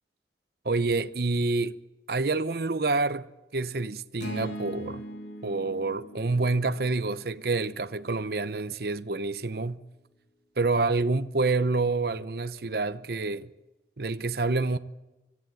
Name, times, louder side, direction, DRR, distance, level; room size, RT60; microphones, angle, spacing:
voice 1, 0.6-1.8 2.1-5.0 5.4-9.8 10.6-13.5 14.0-14.8, right 3 dB, 60° right, 0.8 m, -27 dB
sound 1, 4.2-8.5, equal, 80° left, 2.7 m, -41 dB
25.0 x 14.5 x 9.1 m
head